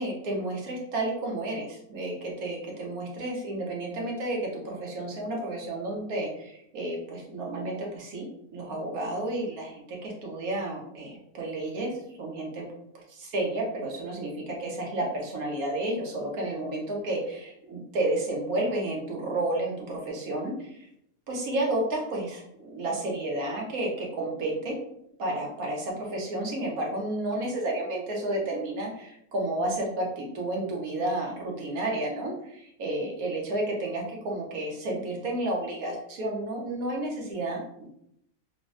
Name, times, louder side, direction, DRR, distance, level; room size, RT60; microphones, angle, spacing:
voice 1, 0.0-8.2 8.5-11.9 12.2-12.7 12.9-20.9 21.3-24.8 25.2-37.9, right 1 dB, 85° right, -1 dB, 1.2 m, -31 dB
3.6 x 2.1 x 2.4 m, 0.75 s
omnidirectional pair, 1.5 m